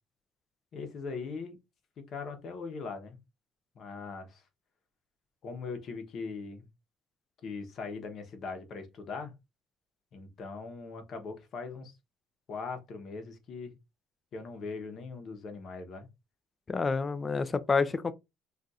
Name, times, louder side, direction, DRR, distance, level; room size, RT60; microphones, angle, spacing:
voice 1, 0.7-1.6 2.0-3.2 3.7-4.4 5.4-6.7 7.4-9.3 10.1-11.9 12.5-13.7 14.3-16.1, left 4 dB, 45° left, 0.9 m, -40 dB
voice 2, 16.7-18.1, left 4 dB, 25° left, 0.4 m, -28 dB
2.5 x 2.4 x 4.0 m
cardioid pair, 120°, 0 cm